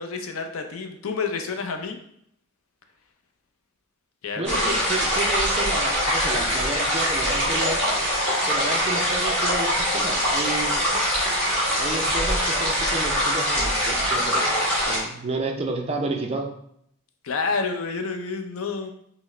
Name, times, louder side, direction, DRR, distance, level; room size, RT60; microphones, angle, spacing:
voice 1, 0.0-2.0 4.2-4.9 17.2-18.9, left 4 dB, 75° left, 5 dB, 0.5 m, -29 dB
sound 1, 4.4-15.0, equal, 5° left, 1.6 m, -23 dB
voice 2, 4.4-7.8 8.5-10.8 11.8-14.5 14.9-16.5, right 2 dB, 30° right, 2 dB, 0.5 m, -31 dB
5.7 x 2.1 x 3.1 m, 0.71 s
head